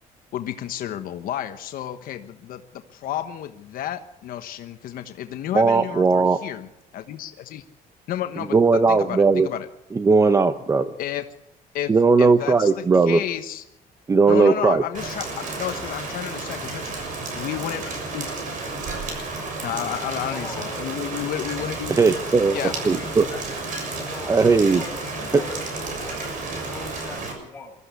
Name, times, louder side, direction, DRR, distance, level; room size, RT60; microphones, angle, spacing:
voice 1, 0.3-7.6 8.1-9.7 11.0-11.2 11.7-11.9 12.2-13.6 14.3-16.8 17.4-17.8 18.1-18.3 19.6-21.9 22.5-22.7, left 11 dB, 65° left, 8 dB, 1.2 m, -31 dB
voice 2, 5.5-6.4 8.5-9.5 10.0-10.9 11.9-13.2 14.1-14.8 22.0-22.6 22.8-23.2 24.3-24.8, right 4 dB, 20° right, 10 dB, 0.7 m, -17 dB
Rain, 14.9-27.3, right 3 dB, 55° right, 6.6 m, -32 dB
voice 3, 20.3-20.9 22.4-23.5 24.1-27.7, left 3 dB, 15° left, 0 dB, 6.4 m, -41 dB
22.5 x 14.0 x 8.2 m, 0.85 s
cardioid pair, 140°, 16 cm